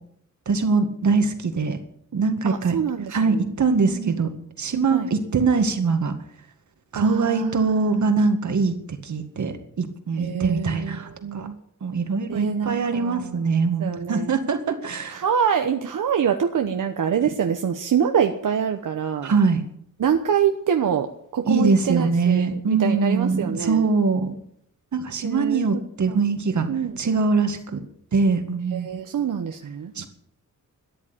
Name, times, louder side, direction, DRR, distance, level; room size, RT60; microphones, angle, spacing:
voice 1, 0.5-1.8 2.1-2.8 3.1-6.1 6.9-8.7 9.0-11.5 11.8-15.2 19.2-19.6 21.5-24.3 24.9-26.7 27.0-27.8 28.1-28.9 30.0-30.1, right 4 dB, 65° right, 7 dB, 2.0 m, -22 dB
voice 2, 2.4-3.5 3.8-4.2 4.9-5.1 6.9-8.1 10.1-11.5 12.3-13.5 13.8-14.3 15.1-19.3 20.0-23.9 25.2-25.6 26.1-26.2 26.7-26.9 28.7-29.9, right 8 dB, 85° right, 5 dB, 1.1 m, -25 dB
13.5 x 10.5 x 8.5 m, 0.70 s
wide cardioid pair, 145°, 31 cm